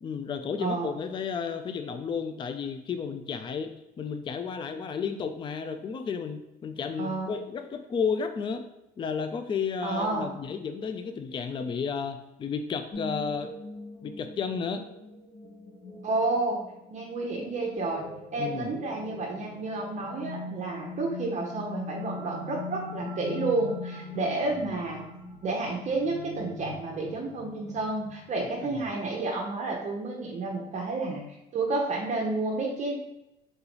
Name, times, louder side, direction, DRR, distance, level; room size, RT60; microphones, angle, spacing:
voice 1, 0.0-8.7 9.0-13.5 14.0-14.8 18.4-18.7 28.6-28.8, left 6 dB, 30° left, 8 dB, 0.4 m, -32 dB
voice 2, 0.6-0.9 7.0-7.3 9.8-10.3 16.0-16.6 16.9-25.0 25.4-31.2 31.5-33.0, right 3 dB, 45° right, -1 dB, 0.8 m, -30 dB
sound 1, 12.9-29.1, left 3 dB, 55° left, 1.3 m, -42 dB
3.9 x 3.8 x 3.0 m, 0.90 s
cardioid pair, 110°, 17 cm